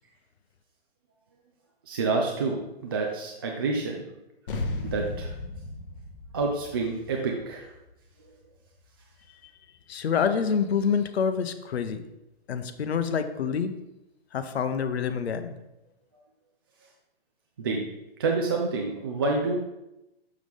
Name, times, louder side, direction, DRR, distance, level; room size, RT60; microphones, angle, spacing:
voice 1, 1.9-4.0 4.8-5.3 6.3-7.7 17.6-17.8 18.2-19.6, right 3 dB, 25° right, -1 dB, 0.4 m, -28 dB
sound 1, 4.5-9.3, left 2 dB, 60° left, 1.0 m, -36 dB
voice 2, 9.9-12.0 12.5-13.7 14.3-15.5, left 6 dB, 85° left, 9 dB, 0.8 m, -27 dB
6.4 x 6.0 x 3.5 m, 0.93 s
hypercardioid pair, 165°, 31 cm